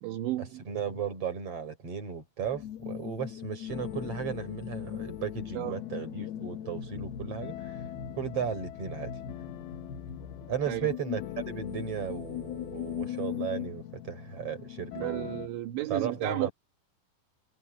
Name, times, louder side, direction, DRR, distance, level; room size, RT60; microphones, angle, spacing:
voice 1, 0.0-0.6 5.6-5.8 10.7-10.9 14.9-16.5, right 15 dB, 75° right, 3.7 m, -33 dB
voice 2, 0.7-7.8 8.1-9.1 10.5-15.3 15.9-16.5, right 7 dB, 30° right, 5.8 m, -35 dB
sound 1, 2.4-13.7, left 10 dB, 65° left, 3.0 m, -40 dB
sound 2, 3.7-15.5, left 12 dB, 85° left, 3.9 m, -44 dB
omnidirectional pair, 5.4 m